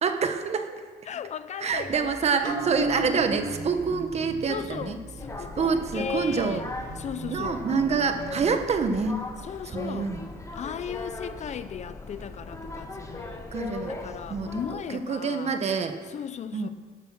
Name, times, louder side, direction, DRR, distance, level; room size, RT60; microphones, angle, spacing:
voice 1, 0.0-0.8 1.6-5.0 5.6-6.6 7.3-9.2 9.7-10.2 13.5-13.9 14.3-16.0 16.5-16.7, right 5 dB, 40° right, 7 dB, 1.1 m, -27 dB
voice 2, 1.1-2.9 4.5-6.7 7.0-7.6 9.4-10.1 10.5-13.5 13.8-15.6 16.1-16.7, left 8 dB, 45° left, 13 dB, 0.5 m, -37 dB
sound 1, 1.7-6.4, right 2 dB, 15° right, 1.0 m, -46 dB
percussion resonance, 2.4-9.3 9.7-9.8, right 1 dB, 55° right, 1.8 m, -37 dB
on the ferry, 5.2-14.7, left 2 dB, 15° left, 1.3 m, -38 dB
12.0 x 8.6 x 6.2 m, 1.5 s
cardioid pair, 110°, 17 cm